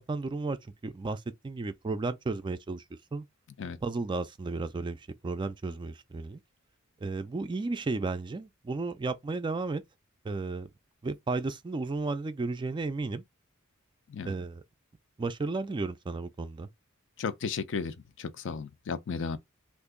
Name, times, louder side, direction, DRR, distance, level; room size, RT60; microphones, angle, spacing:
voice 1, 0.0-2.8 3.1-3.2 3.8-6.4 7.0-9.8 10.2-10.7 11.0-13.2 14.2-14.6 15.2-16.7, right 3 dB, 20° right, 0.3 m, -33 dB
voice 2, 17.2-19.4, left 5 dB, 60° left, 0.5 m, -34 dB
2.8 x 2.5 x 3.6 m
head